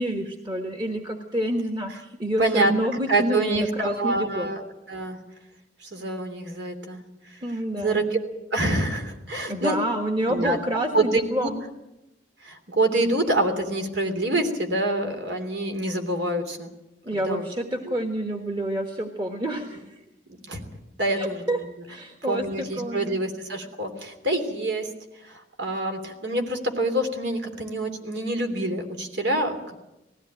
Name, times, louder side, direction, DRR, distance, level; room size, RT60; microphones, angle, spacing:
voice 1, 0.0-4.5 7.4-8.0 9.5-11.6 17.0-20.0 21.1-21.6 21.9-22.4 22.8-23.2, right 1 dB, 25° right, 4 dB, 1.4 m, -28 dB
voice 2, 2.4-2.7 3.1-5.2 5.8-7.4 7.7-8.2 8.5-9.8 10.3-10.6 10.9-11.5 12.4-16.7 17.1-17.5 17.8-17.9 19.4-19.6 20.5-20.6 21.0-21.7 22.3-24.9 25.2-29.8, right 2 dB, 80° right, 5 dB, 3.2 m, -26 dB
19.5 x 16.0 x 9.0 m, 0.96 s
head